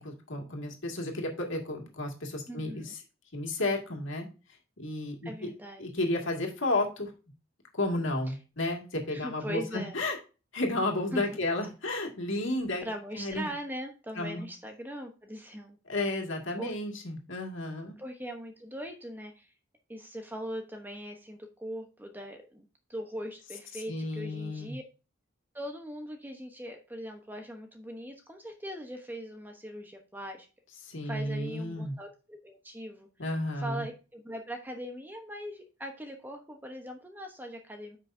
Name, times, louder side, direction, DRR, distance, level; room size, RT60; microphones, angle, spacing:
voice 1, 0.0-3.0 3.3-4.3 4.8-5.5 5.8-7.1 7.7-10.2 10.5-12.8 13.2-13.5 14.2-14.4 15.9-18.0 23.9-24.7 30.8-31.9 33.2-33.8, left 2 dB, 65° left, 2 dB, 2.2 m, -32 dB
voice 2, 2.5-2.9 5.2-5.8 8.3-8.4 9.1-10.0 11.1-11.2 12.8-15.8 16.6-16.7 18.0-19.5 19.9-24.8 25.5-30.5 31.0-33.1 33.6-38.0, equal, 10° right, 4 dB, 1.0 m, -40 dB
9.5 x 5.9 x 2.7 m, 0.32 s
head